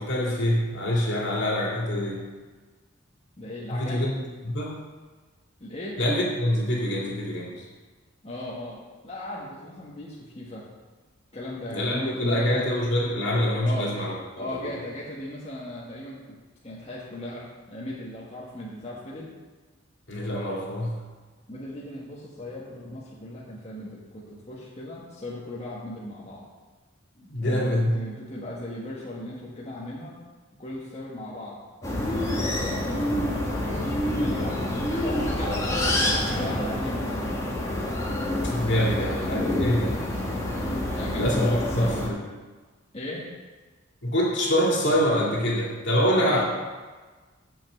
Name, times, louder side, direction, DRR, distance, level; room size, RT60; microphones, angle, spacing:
voice 1, 0.0-2.2 3.7-4.1 4.4-4.8 6.0-7.6 11.7-14.7 20.1-21.0 27.3-28.0 38.4-39.9 41.1-42.2 44.0-46.5, equal, 65° left, -4 dB, 2.7 m, -25 dB
voice 2, 3.4-4.0 5.6-6.0 8.2-10.6 11.3-12.7 13.6-13.9 14.4-16.4 16.6-19.3 21.5-26.4 27.4-30.2 30.6-32.8 33.1-33.7 34.1-37.4 40.9-42.0 42.9-43.2 46.2-46.4, left 1 dB, 30° left, -7 dB, 1.5 m, -37 dB
sound 1, 31.8-42.1, left 1 dB, 15° left, 1.4 m, -27 dB
7.1 x 6.2 x 7.8 m, 1.4 s
head